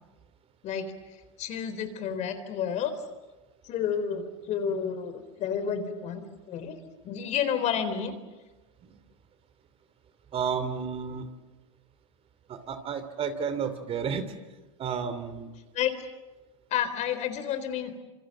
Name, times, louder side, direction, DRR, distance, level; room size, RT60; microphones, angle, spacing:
voice 1, 1.4-2.9 3.6-6.7 7.0-8.1 15.7-15.9 16.7-18.0, left 8 dB, 45° left, 10 dB, 3.8 m, -30 dB
voice 2, 10.3-11.3 12.5-14.3 14.8-15.5, right 6 dB, 35° right, 10 dB, 2.9 m, -31 dB
27.0 x 25.5 x 7.8 m, 1.2 s
hypercardioid pair, 100°, 17 cm